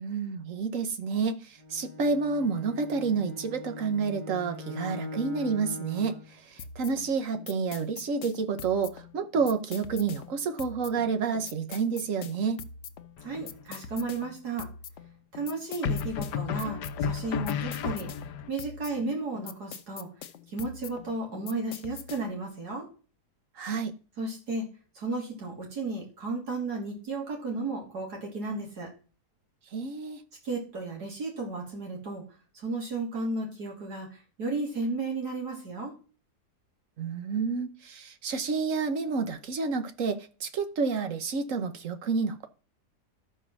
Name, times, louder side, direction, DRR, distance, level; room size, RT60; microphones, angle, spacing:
voice 1, 0.0-12.7 23.6-23.9 29.7-30.2 37.0-42.5, right 5 dB, 55° right, 1.2 m, -29 dB
Bowed string instrument, 1.6-6.3, left 2 dB, 25° right, 4.1 m, -41 dB
sound 1, 6.6-22.5, left 7 dB, 60° left, 0.8 m, -44 dB
sound 2, 13.2-13.7 15.8-18.5, left 7 dB, 85° left, 1.3 m, -32 dB
voice 2, 13.2-14.7 15.3-18.1 18.5-20.1 20.5-22.9 24.2-28.9 30.4-32.2 32.5-35.9, right 3 dB, 70° right, 3.3 m, -34 dB
12.5 x 4.7 x 6.1 m
omnidirectional pair, 1.7 m